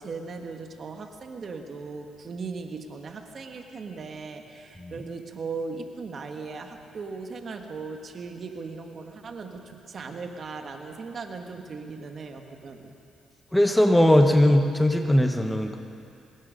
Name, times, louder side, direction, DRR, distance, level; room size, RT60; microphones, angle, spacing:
voice 1, 0.0-12.9, right 4 dB, 50° right, 4 dB, 1.8 m, -38 dB
voice 2, 13.5-15.8, left 1 dB, 5° left, 5 dB, 1.4 m, -19 dB
24.5 x 20.5 x 5.4 m, 2.6 s
cardioid pair, 90°, 0 cm